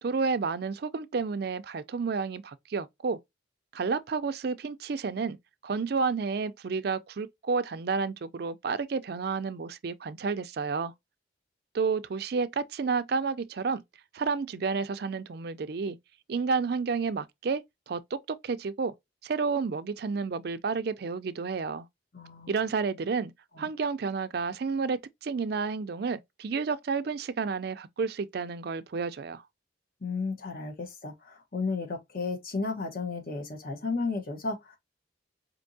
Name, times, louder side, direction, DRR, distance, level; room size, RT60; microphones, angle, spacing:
voice 1, 0.0-3.2 3.7-5.4 5.6-10.9 11.7-13.8 14.1-16.0 16.3-18.9 19.2-21.9 22.5-23.3 23.6-29.4, right 5 dB, 55° right, 0.4 m, -30 dB
voice 2, 22.1-22.5 23.5-23.7 30.0-34.8, left 4 dB, 50° left, 1.0 m, -33 dB
4.4 x 2.7 x 2.6 m
head